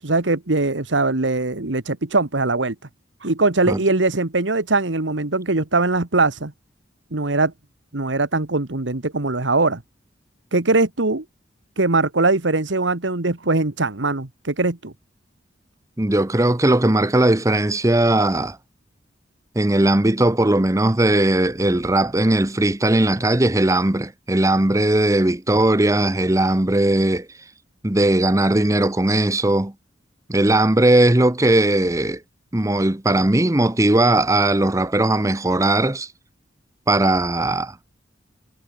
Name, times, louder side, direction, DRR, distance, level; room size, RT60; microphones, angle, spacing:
voice 1, 0.0-2.7 3.2-6.5 7.1-7.5 7.9-9.8 10.5-11.2 11.8-14.9, right 3 dB, 90° right, 1.7 m, -21 dB
voice 2, 16.0-18.6 19.5-27.3 27.8-29.7 30.3-32.2 32.5-36.1 36.9-37.8, right 1 dB, 15° right, 0.9 m, -18 dB
head